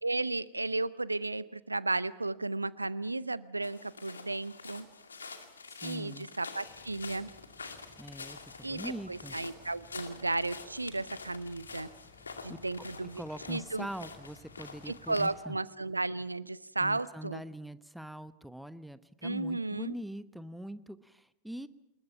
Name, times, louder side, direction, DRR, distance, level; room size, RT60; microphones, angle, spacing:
voice 1, 0.0-4.9 5.8-7.3 8.6-8.8 9.1-11.9 12.4-13.2 13.5-13.9 14.9-17.4 19.2-19.9, right 2 dB, 80° right, 19 dB, 0.7 m, -34 dB
sound 1, 3.6-15.3, left 4 dB, 75° left, 2.4 m, -47 dB
voice 2, 5.7-6.3 8.0-9.4 12.5-12.6 13.0-15.6 16.8-21.7, right 1 dB, ahead, 15 dB, 1.0 m, -43 dB
sound 2, 6.7-15.4, left 3 dB, 35° left, 7.8 m, -60 dB
27.0 x 21.0 x 5.8 m, 0.87 s
figure-of-eight pair, 90°, 0 cm